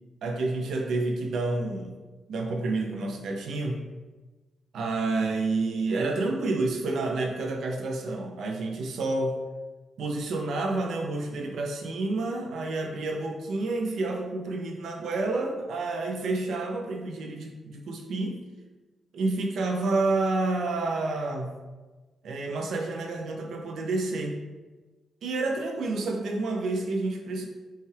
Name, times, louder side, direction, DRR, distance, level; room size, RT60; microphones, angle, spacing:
voice 1, 0.2-2.0 2.3-3.9 4.7-9.4 10.0-18.4 19.1-21.6 22.2-24.4 25.2-27.5, right 2 dB, 75° right, 2 dB, 0.5 m, -29 dB
5.5 x 2.4 x 3.2 m, 1.2 s
cardioid pair, 115°, 0 cm